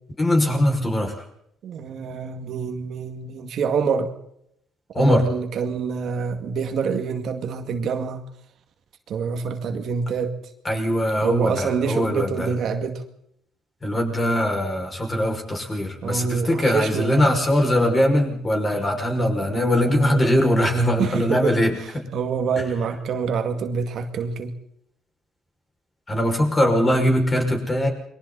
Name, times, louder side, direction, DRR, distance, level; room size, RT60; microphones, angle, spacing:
voice 1, 0.2-1.2 4.9-5.2 10.6-12.5 13.8-21.7 26.1-27.9, left 1 dB, 20° left, 2 dB, 6.1 m, -21 dB
voice 2, 1.6-4.1 5.0-8.2 9.1-10.4 11.2-13.0 16.0-17.3 19.4-20.3 21.0-21.6 22.1-24.5, right 5 dB, 60° right, 5 dB, 2.2 m, -26 dB
29.5 x 22.5 x 4.2 m, 0.73 s
cardioid pair, 115°, 0 cm